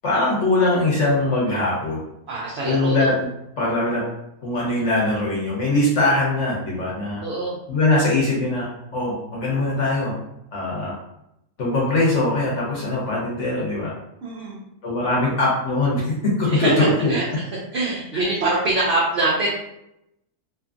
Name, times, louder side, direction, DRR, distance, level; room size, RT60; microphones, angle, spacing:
voice 1, 0.0-2.0 2.6-3.2 3.6-4.0 4.4-7.2 7.7-8.7 8.9-10.1 10.5-10.9 11.6-13.9 14.8-17.1, left 2 dB, 60° left, -5 dB, 0.9 m, -21 dB
voice 2, 2.3-3.1 7.2-7.6 14.2-14.6 16.5-16.7 17.1-17.2 17.7-19.5, right 2 dB, 70° right, -4 dB, 0.6 m, -24 dB
2.7 x 2.4 x 2.4 m, 0.83 s
omnidirectional pair, 1.6 m